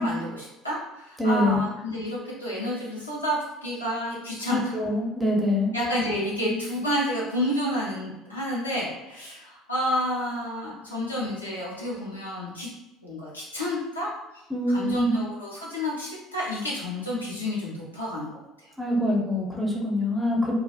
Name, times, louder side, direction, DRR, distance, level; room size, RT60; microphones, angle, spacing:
voice 1, 0.0-4.8 5.7-12.7 13.0-14.1 14.3-18.7, equal, 90° left, -7 dB, 0.5 m, -30 dB
voice 2, 1.2-1.6 4.5-5.7 14.5-15.2 18.8-20.5, left 1 dB, 10° right, -2 dB, 0.7 m, -24 dB
2.3 x 2.0 x 2.6 m, 1.0 s
figure-of-eight pair, 60°, 0 cm